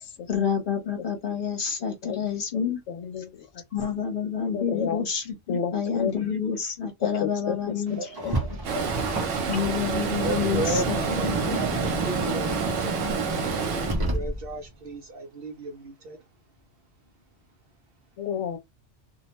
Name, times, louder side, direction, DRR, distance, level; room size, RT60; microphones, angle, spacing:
voice 1, 0.3-2.8 3.7-8.4 9.5-11.6, left 7 dB, 50° left, 1.0 m, -28 dB
voice 2, 1.9-2.2 2.9-3.5 4.5-5.0 5.5-6.1 7.2-7.6 8.2-8.3 18.2-18.6, left 7 dB, 75° left, 0.9 m, -31 dB
voice 3, 7.9-13.6 14.0-16.2, right 1 dB, 60° right, 0.7 m, -35 dB
Car, 8.1-14.7, right 2 dB, 35° right, 0.4 m, -31 dB
Stream, 8.6-13.9, right 5 dB, 75° right, 1.0 m, -29 dB
2.4 x 2.1 x 2.9 m
omnidirectional pair, 1.3 m